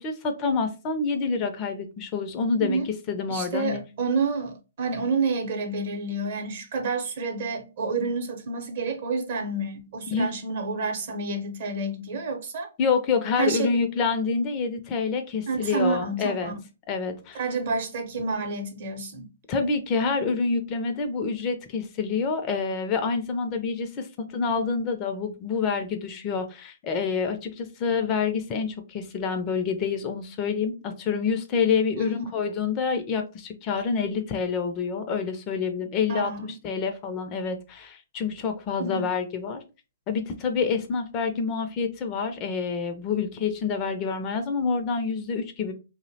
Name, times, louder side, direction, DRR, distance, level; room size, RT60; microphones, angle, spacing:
voice 1, 0.0-2.8 3.1-3.8 10.1-10.3 12.8-16.5 16.9-17.4 19.5-24.1 24.3-36.3 36.6-39.6 40.1-45.7, left 5 dB, 30° left, 0.4 m, -27 dB
voice 2, 3.3-12.7 13.4-13.8 15.5-16.5 17.3-19.3 32.0-32.2 36.1-36.5 38.8-39.0, right 3 dB, 55° right, 0.7 m, -29 dB
2.6 x 2.0 x 2.6 m
hypercardioid pair, 140°, 0 cm